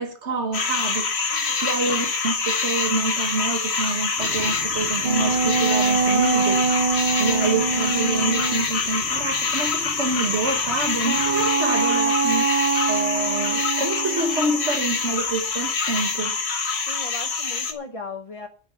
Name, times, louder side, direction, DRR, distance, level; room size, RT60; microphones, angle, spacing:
voice 1, 0.0-16.4, right 3 dB, 85° right, 1.9 m, -27 dB
sound 1, 0.5-17.7, left 4 dB, 70° left, 1.6 m, -25 dB
voice 2, 1.3-1.7 16.8-18.5, left 3 dB, 35° left, 1.0 m, -37 dB
sound 2, 4.2-11.5, right 6 dB, 60° right, 1.2 m, -41 dB
sound 3, 5.0-8.7 11.0-15.0, right 5 dB, 35° right, 0.7 m, -24 dB
10.5 x 8.8 x 6.4 m
omnidirectional pair, 1.1 m